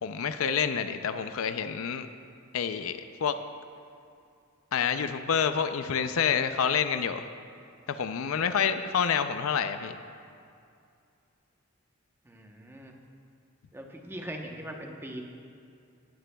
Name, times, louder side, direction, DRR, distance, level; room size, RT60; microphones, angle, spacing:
voice 1, 0.0-2.1 2.5-3.3 4.7-7.3 7.9-10.0, left 7 dB, 75° left, 10 dB, 0.5 m, -28 dB
voice 2, 12.2-12.9 13.7-15.2, right 1 dB, 10° right, 1 dB, 0.9 m, -40 dB
18.0 x 11.0 x 2.3 m, 2.5 s
head